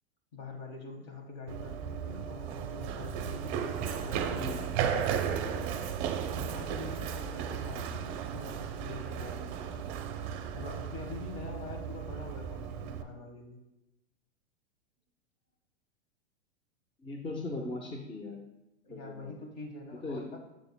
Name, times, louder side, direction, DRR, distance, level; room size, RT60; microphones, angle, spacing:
voice 1, 0.3-5.9 6.4-9.8 10.5-13.6 18.8-20.4, left 3 dB, 45° left, 2 dB, 1.6 m, -45 dB
Run, 1.5-13.0, right 8 dB, 35° right, 0.6 m, -35 dB
voice 2, 17.0-18.4 18.9-19.3 20.0-20.2, left 2 dB, 15° left, 1 dB, 0.6 m, -39 dB
6.8 x 6.7 x 2.3 m, 0.94 s
hypercardioid pair, 105°, 34 cm